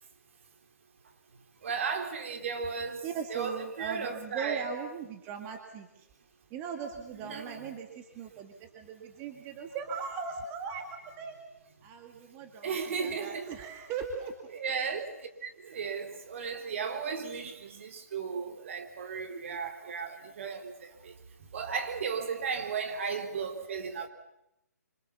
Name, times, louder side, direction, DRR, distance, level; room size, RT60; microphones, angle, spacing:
voice 1, 1.6-4.7 7.2-7.7 12.6-13.6 14.5-15.0 15.4-20.7 21.5-24.1, right 5 dB, 50° right, 3.5 m, -35 dB
voice 2, 3.0-6.1 6.5-11.4 11.8-14.3, right 6 dB, 20° right, 2.3 m, -39 dB
26.5 x 26.0 x 7.1 m
figure-of-eight pair, 145°, 9 cm